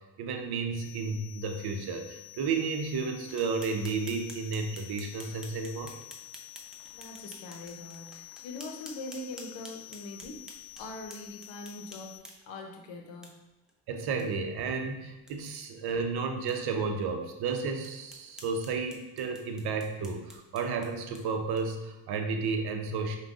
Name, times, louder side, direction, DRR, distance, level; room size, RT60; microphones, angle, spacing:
voice 1, 0.2-6.0 13.9-23.2, right 4 dB, 65° right, 5 dB, 0.6 m, -32 dB
sound 1, 0.8-12.2, left 20 dB, 45° left, 0.5 m, -49 dB
sound 2, 3.3-12.6 13.2-13.3 13.7-13.8 14.2-14.3 14.6-14.7 15.1-15.3 15.9-16.0 16.5-16.6 17.1-17.2 17.8-21.9, equal, ahead, 0.6 m, -50 dB
voice 2, 6.9-10.5 10.8-13.4, left 2 dB, 90° left, 2 dB, 0.7 m, -42 dB
5.1 x 2.2 x 2.4 m, 1.1 s
supercardioid pair, 70°, 42 cm